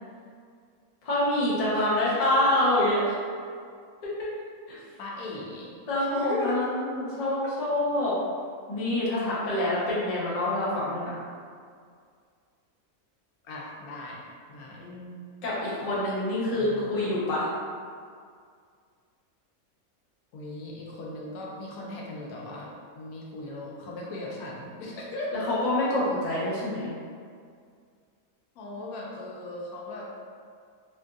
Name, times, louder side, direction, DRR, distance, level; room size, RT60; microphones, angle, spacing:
voice 1, 1.0-3.0 4.7-4.8 5.9-8.2 8.7-11.2 14.8-15.1 15.4-17.5 25.5-26.9, left 1 dB, 35° left, -8 dB, 0.6 m, -26 dB
voice 2, 2.1-2.5 5.0-5.7 6.0-6.6 7.2-7.3 13.4-14.2 14.5-14.8 16.5-16.9 20.3-22.7 22.9-25.5 28.6-30.1, left 2 dB, 90° left, -3 dB, 1.1 m, -37 dB
3.6 x 2.6 x 2.3 m, 2.1 s
omnidirectional pair, 1.5 m